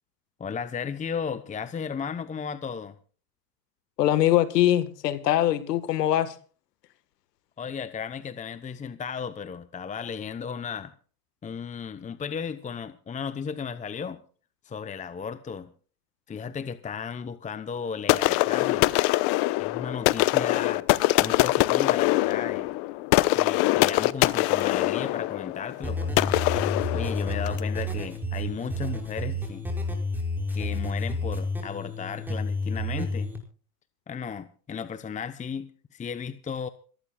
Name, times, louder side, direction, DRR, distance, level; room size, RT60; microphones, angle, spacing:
voice 1, 0.4-2.9 7.6-10.9 11.4-14.2 14.6-15.7 16.3-18.9 19.6-20.9 21.2-22.7 23.3-26.4 26.9-29.6 30.5-33.3 34.1-36.7, left 6 dB, 15° left, 0.8 m, -35 dB
voice 2, 4.0-6.3, left 12 dB, 90° left, 1.6 m, -22 dB
sound 1, 18.1-27.7, left 20 dB, 55° left, 1.0 m, -23 dB
sound 2, 25.8-33.4, left 2 dB, 5° right, 5.6 m, -30 dB
27.5 x 14.0 x 2.3 m
supercardioid pair, 110°, 47 cm